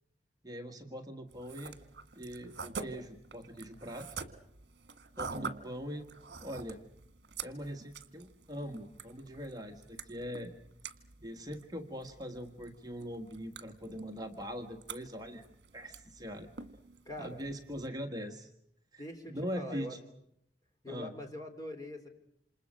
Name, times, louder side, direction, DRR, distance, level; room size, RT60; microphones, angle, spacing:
voice 1, 0.4-1.8 2.1-4.1 5.2-6.1 6.4-6.8 7.4-10.5 11.2-15.4 15.7-16.5 17.2-18.5 18.9-20.0 20.9-21.1, equal, 20° right, 4 dB, 1.5 m, -42 dB
sound 1, 1.3-17.9, right 5 dB, 70° right, 1.7 m, -47 dB
voice 2, 17.0-17.4 19.0-20.0 20.8-22.1, left 1 dB, 20° left, 5 dB, 3.5 m, -43 dB
28.5 x 27.5 x 6.3 m, 0.73 s
head